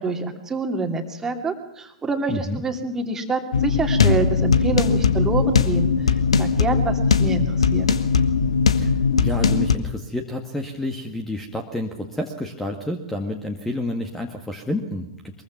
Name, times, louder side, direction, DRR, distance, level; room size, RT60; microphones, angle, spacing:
voice 1, 0.0-5.9 6.4-7.9, right 3 dB, 15° right, 4 dB, 2.8 m, -26 dB
voice 2, 2.3-2.6 8.8-15.4, left 1 dB, 5° left, 5 dB, 2.0 m, -29 dB
sound 1, 3.5-9.8, left 5 dB, 65° left, 1.5 m, -19 dB
23.5 x 22.5 x 6.1 m, 0.78 s
figure-of-eight pair, 100°, 3 cm